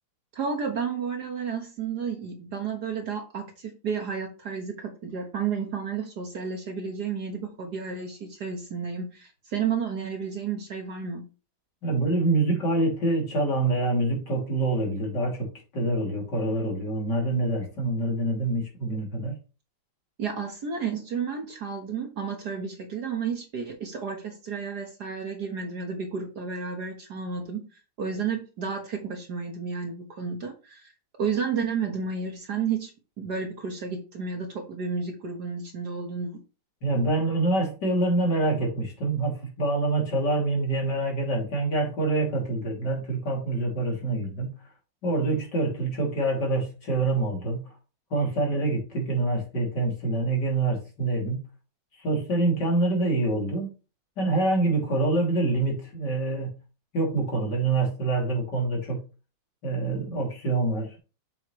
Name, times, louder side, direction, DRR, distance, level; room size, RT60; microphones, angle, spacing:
voice 1, 0.3-11.2 20.2-27.7 28.0-30.9 31.2-32.9 33.2-36.4, right 6 dB, 50° right, 1.8 m, -32 dB
voice 2, 11.8-19.4 36.8-44.6 45.0-47.7 48.1-51.5 51.9-53.7 54.2-56.6 56.9-59.1 59.6-61.0, right 2 dB, 50° left, 3.6 m, -26 dB
8.0 x 7.3 x 3.2 m
omnidirectional pair, 2.4 m